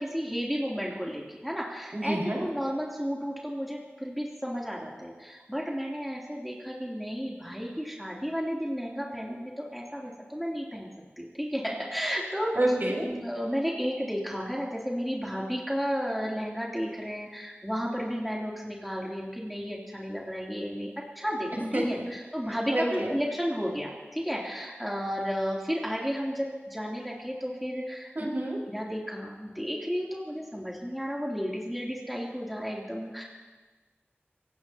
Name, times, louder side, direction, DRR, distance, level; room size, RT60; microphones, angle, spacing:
voice 1, 0.0-10.9 11.2-12.6 13.1-28.1 28.7-33.2, equal, ahead, -4 dB, 3.0 m, -33 dB
voice 2, 1.9-2.4 12.5-13.1 21.7-21.8 22.7-23.2 28.2-28.6, right 1 dB, 50° right, -3 dB, 5.4 m, -28 dB
26.5 x 17.5 x 2.9 m, 1.3 s
wide cardioid pair, 45°, 4 cm